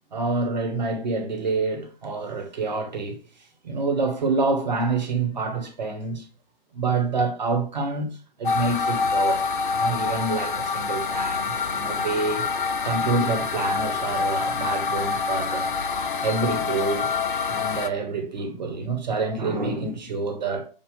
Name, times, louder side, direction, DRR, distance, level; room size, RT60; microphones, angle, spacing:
voice 1, 0.1-3.2 3.6-6.3 6.7-8.1 8.4-9.4 9.7-12.4 12.8-15.7 16.2-17.1 17.5-20.7, right 3 dB, 45° right, 1.6 m, -27 dB
sound 1, 8.4-17.9, left 5 dB, 55° left, 0.6 m, -26 dB
7.3 x 2.5 x 5.3 m
figure-of-eight pair, 135°, 31 cm